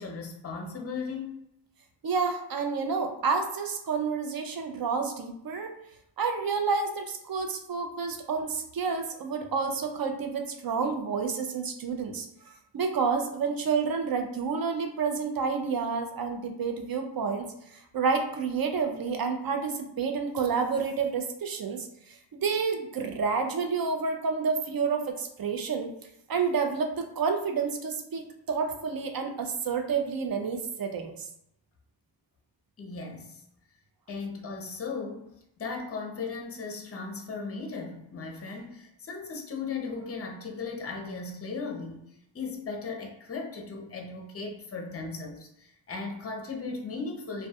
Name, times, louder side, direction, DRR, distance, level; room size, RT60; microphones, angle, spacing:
voice 1, 0.0-1.3 32.8-33.4 34.1-42.1 42.3-47.5, left 4 dB, 30° left, 2 dB, 0.5 m, -37 dB
voice 2, 2.0-5.7 6.2-12.3 12.7-17.5 17.7-25.9 26.3-31.3, right 5 dB, 55° right, 5 dB, 0.4 m, -29 dB
2.2 x 2.2 x 2.7 m, 0.79 s
cardioid pair, 50°, 45 cm